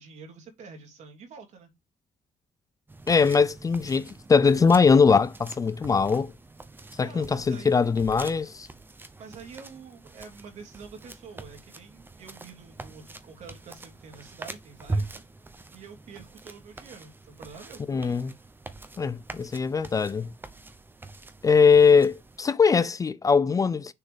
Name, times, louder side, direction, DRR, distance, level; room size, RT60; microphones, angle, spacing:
voice 1, 0.0-1.7 7.0-8.0 9.2-15.2 15.5-18.2, right 5 dB, 70° right, 2.9 m, -47 dB
sound 1, 2.9-22.4, right 2 dB, 15° right, 0.9 m, -42 dB
voice 2, 3.1-6.3 7.0-8.7 17.9-18.3 19.0-20.3 21.4-23.9, left 5 dB, 30° left, 0.4 m, -21 dB
6.8 x 3.9 x 4.9 m
cardioid pair, 110°, 12 cm